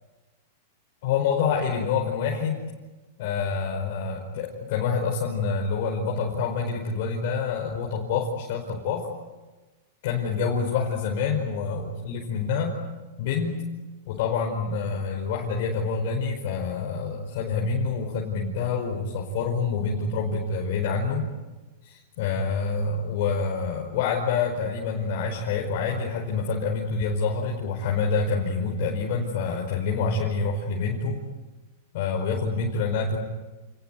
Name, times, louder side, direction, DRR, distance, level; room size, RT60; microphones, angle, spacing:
voice 1, 1.0-2.6 3.2-9.1 10.0-12.8 13.2-13.6 14.1-21.3 21.8-31.2 31.9-33.2, left 5 dB, 60° left, -1 dB, 5.1 m, -27 dB
28.5 x 20.0 x 9.6 m, 1.2 s
hypercardioid pair, 135°, 0 cm